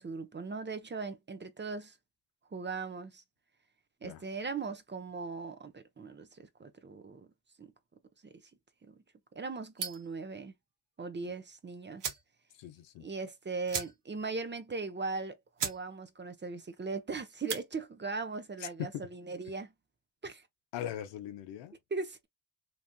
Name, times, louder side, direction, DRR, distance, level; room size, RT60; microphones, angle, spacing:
voice 1, 0.0-2.0 2.5-3.2 4.0-7.3 7.6-7.7 8.2-8.4 8.8-8.9 9.3-10.5 11.0-12.1 13.0-15.4 15.6-19.7 20.2-20.4 21.9-22.3, right 4 dB, 25° right, 0.8 m, -39 dB
sound 1, 9.8-10.2 11.5-11.6 12.0-12.3 12.7-12.8 13.0-13.2 13.7-14.3 14.6-14.7 15.2-15.3 15.6-15.8 16.2-16.5 17.3-17.7, right 7 dB, 70° right, 1.2 m, -37 dB
voice 2, 12.6-13.1 18.6-18.9 20.7-21.8, left 11 dB, 75° left, 0.8 m, -40 dB
3.1 x 2.5 x 2.3 m
supercardioid pair, 65°, 43 cm